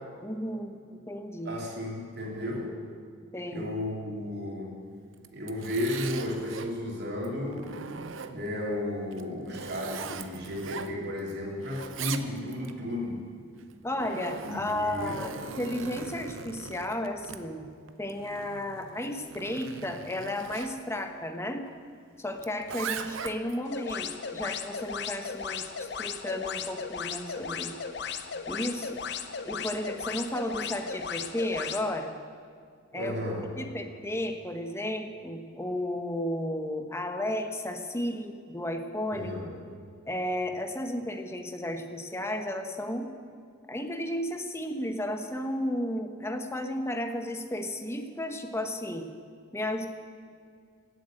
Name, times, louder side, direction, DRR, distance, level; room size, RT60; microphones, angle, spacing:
voice 1, 0.2-0.7 1.1-1.6 3.3-3.6 13.8-17.7 18.0-21.7 22.2-27.7 28.5-29.0 29.5-32.1 32.9-33.1 33.6-39.3 40.1-43.1 43.7-49.1 49.5-49.9, left 1 dB, 15° left, 6 dB, 1.0 m, -33 dB
voice 2, 1.4-2.7 3.5-4.8 5.3-7.7 8.3-13.2 14.4-15.3 32.9-33.5 39.1-39.5, left 1 dB, 55° right, -2 dB, 2.8 m, -33 dB
Zipper (clothing), 5.1-6.7 7.2-8.6 9.1-11.3 11.6-12.7 13.6-20.7 22.4-23.6, right 6 dB, 80° right, 0.7 m, -40 dB
sound 1, 23.7-31.8, left 6 dB, 60° left, 0.8 m, -36 dB
15.5 x 7.7 x 9.0 m, 2.3 s
head